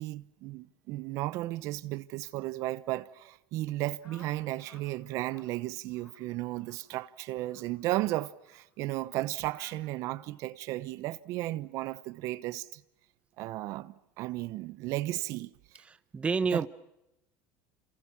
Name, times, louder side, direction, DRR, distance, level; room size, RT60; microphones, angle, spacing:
voice 1, 0.0-12.8 13.4-15.8 16.5-16.7, right 17 dB, 55° right, 0.9 m, -34 dB
sound 1, 4.0-4.9 5.2-5.5 5.9-6.2 6.6-6.8 7.4-7.7 8.4-8.6 9.5-9.8, left 4 dB, 50° left, 7.4 m, -57 dB
voice 2, 15.8-16.7, right 5 dB, 20° right, 0.9 m, -29 dB
28.5 x 27.5 x 6.0 m
supercardioid pair, 130°, 6 cm